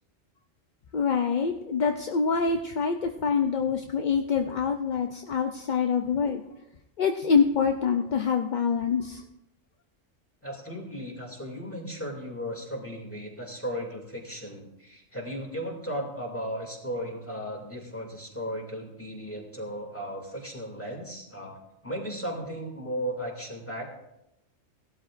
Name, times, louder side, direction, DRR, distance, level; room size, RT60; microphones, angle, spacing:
voice 1, 0.9-6.4 7.0-9.2, left 6 dB, 50° left, 5 dB, 0.6 m, -25 dB
voice 2, 10.4-21.6 21.8-23.9, equal, 10° left, -1 dB, 2.5 m, -36 dB
17.5 x 12.5 x 2.5 m, 0.86 s
omnidirectional pair, 1.3 m